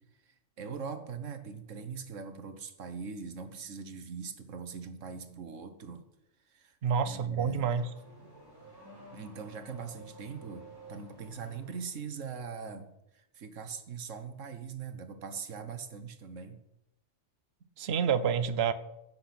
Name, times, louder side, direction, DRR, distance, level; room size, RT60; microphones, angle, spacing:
voice 1, 0.3-6.0 6.5-6.8 7.1-7.6 9.1-16.6, right 5 dB, 80° right, 9 dB, 1.5 m, -41 dB
voice 2, 6.8-7.8 17.8-18.7, right 7 dB, 60° right, 12 dB, 1.0 m, -28 dB
Car / Accelerating revving vroom, 7.1-12.0, right 2 dB, 15° right, 3.1 m, -53 dB
16.0 x 7.5 x 6.0 m, 0.86 s
omnidirectional pair, 1.3 m